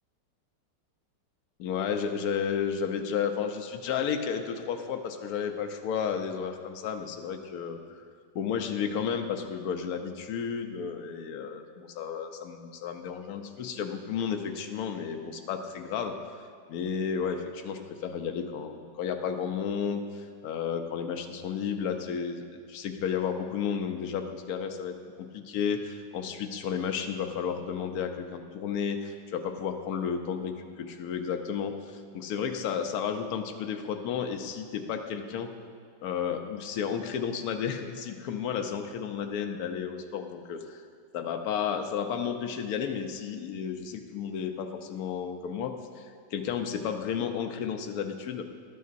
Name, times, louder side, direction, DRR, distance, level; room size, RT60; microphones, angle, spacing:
voice 1, 1.6-8.0 8.3-16.2 16.7-35.5 36.0-40.8 41.1-48.4, left 7 dB, 65° left, 5 dB, 1.0 m, -32 dB
12.0 x 9.2 x 2.5 m, 2.1 s
omnidirectional pair, 1.9 m